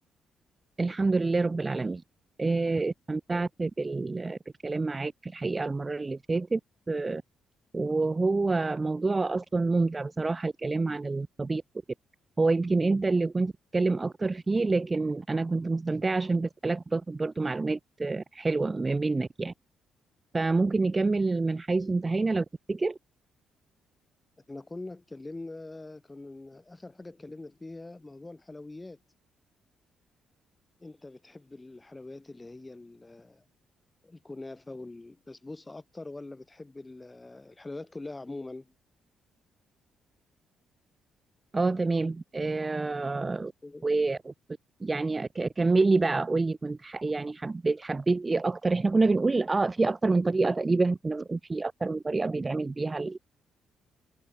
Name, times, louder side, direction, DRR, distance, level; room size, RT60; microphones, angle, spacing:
voice 1, 0.8-2.0 2.4-6.6 6.9-7.2 7.7-11.6 12.4-19.5 20.3-23.0 41.5-43.5 43.8-44.3 44.8-53.2, right 3 dB, 25° right, 0.6 m, -27 dB
voice 2, 24.5-29.0 30.8-33.4 34.0-38.7 43.6-43.9, left 2 dB, 15° left, 7.1 m, -43 dB
cardioid pair, 90°, 0 cm